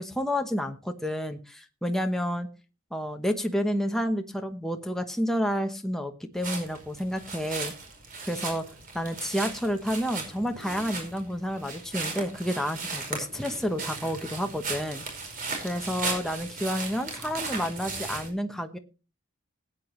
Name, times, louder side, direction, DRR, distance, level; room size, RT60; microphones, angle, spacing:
voice 1, 0.0-2.5 2.9-7.7 8.2-8.6 8.9-15.0 15.6-18.8, equal, ahead, 4 dB, 0.9 m, -30 dB
sound 1, 6.4-18.3, right 3 dB, 40° right, 4.9 m, -36 dB
19.0 x 9.1 x 3.1 m, 0.32 s
head